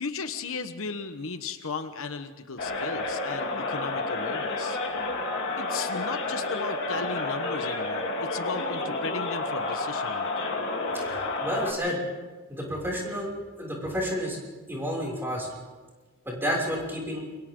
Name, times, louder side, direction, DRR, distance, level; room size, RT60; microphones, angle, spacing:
voice 1, 0.0-4.8 5.6-10.6, left 4 dB, 70° left, 8 dB, 1.1 m, -36 dB
sound 1, 2.6-11.7, left 2 dB, 55° left, 3.3 m, -30 dB
voice 2, 11.0-12.0 12.5-13.3 13.6-14.4 14.7-15.5 16.2-17.2, equal, 10° right, -2 dB, 6.1 m, -30 dB
29.5 x 23.5 x 3.8 m, 1.3 s
head